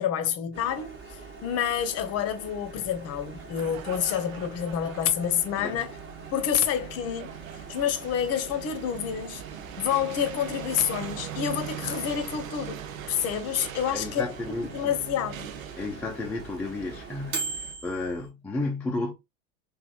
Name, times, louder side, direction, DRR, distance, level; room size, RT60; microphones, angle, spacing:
voice 1, 0.0-5.9 6.3-7.3 7.7-9.4 9.8-14.3 14.7-15.5, left 9 dB, 40° left, 0.7 m, -28 dB
Microwave oven, 0.5-18.3, right 3 dB, 30° right, 1.0 m, -42 dB
sound 1, 3.3-17.7, right 11 dB, 75° right, 0.5 m, -42 dB
voice 2, 13.9-14.9 15.8-19.1, left 2 dB, 5° left, 0.3 m, -33 dB
3.0 x 2.5 x 2.3 m
figure-of-eight pair, 75°, 40 cm